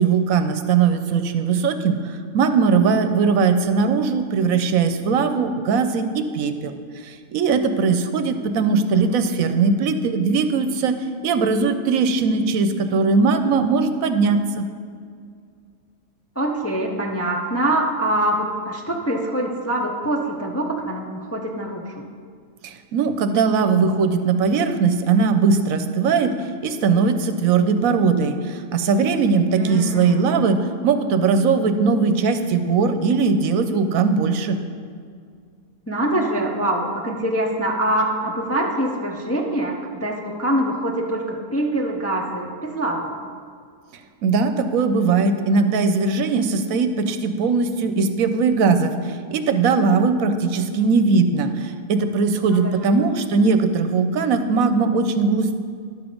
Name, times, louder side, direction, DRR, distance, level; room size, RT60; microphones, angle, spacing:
voice 1, 0.0-6.8 7.1-10.9 11.2-14.7 22.6-26.3 26.6-34.6 44.2-48.9 49.3-55.6, right 4 dB, 80° right, 8 dB, 1.1 m, -20 dB
voice 2, 8.9-9.3 14.1-14.2 16.4-22.0 29.5-30.4 35.9-43.2 52.4-53.0, right 1 dB, 15° left, 0 dB, 0.5 m, -24 dB
11.0 x 6.9 x 5.2 m, 2.2 s
omnidirectional pair, 1.5 m